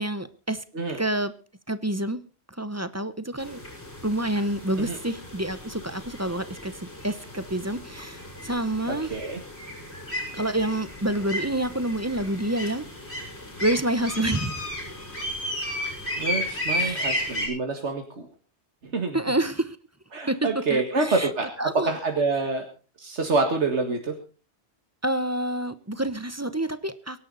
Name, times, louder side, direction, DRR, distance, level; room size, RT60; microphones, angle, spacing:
voice 1, 0.0-0.6 1.0-1.3 1.7-2.2 2.6-3.6 4.0-6.7 7.0-9.1 10.3-12.9 13.6-14.7 16.7-17.2 19.1-19.8 20.3-20.4 20.7-21.3 21.6-21.9 25.0-27.2, right 1 dB, 15° right, 13 dB, 0.9 m, -28 dB
sound 1, 3.4-17.5, left 1 dB, 70° left, 7.2 m, -34 dB
voice 2, 8.9-9.4 16.2-18.3 18.8-19.2 20.1-21.5 21.7-22.7 23.0-24.1, right 3 dB, 90° right, 3 dB, 2.2 m, -27 dB
23.5 x 11.0 x 4.0 m, 0.35 s
omnidirectional pair, 1.1 m